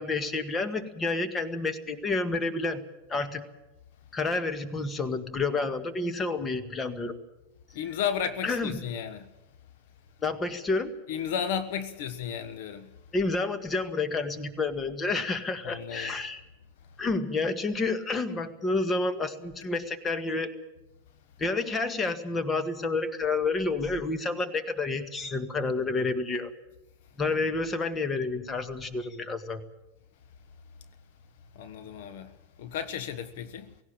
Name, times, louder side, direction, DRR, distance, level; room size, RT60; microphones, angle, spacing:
voice 1, 0.0-2.8 3.1-3.4 4.1-7.2 8.4-8.8 10.2-10.9 13.1-16.4 17.0-20.5 21.4-26.5 27.2-29.6, left 3 dB, 20° left, 1.8 m, -29 dB
voice 2, 7.7-9.3 11.1-12.9 15.6-16.1 31.5-33.7, left 8 dB, 60° left, 1.3 m, -33 dB
17.5 x 17.0 x 8.8 m
hypercardioid pair, 105°, 0 cm